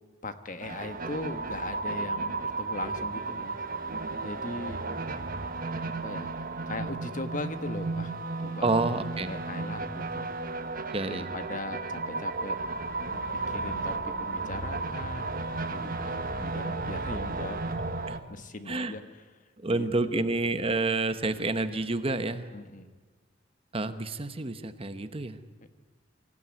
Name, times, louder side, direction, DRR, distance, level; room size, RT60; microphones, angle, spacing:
voice 1, 0.2-3.6 4.2-4.8 5.8-6.3 6.7-8.8 9.2-10.3 11.1-12.6 13.1-17.6 18.3-19.0 19.7-19.9 20.1-20.2 22.5-22.9 25.6-25.7, left 2 dB, 45° left, 10 dB, 1.4 m, -39 dB
sound 1, 0.6-18.2, right 3 dB, 50° right, 1.4 m, -34 dB
voice 2, 8.6-9.3 10.9-11.3 18.1-18.2 18.7-18.9 19.6-22.6 23.7-25.4, right 2 dB, 30° right, 11 dB, 1.0 m, -29 dB
25.0 x 15.5 x 9.5 m, 1.4 s
head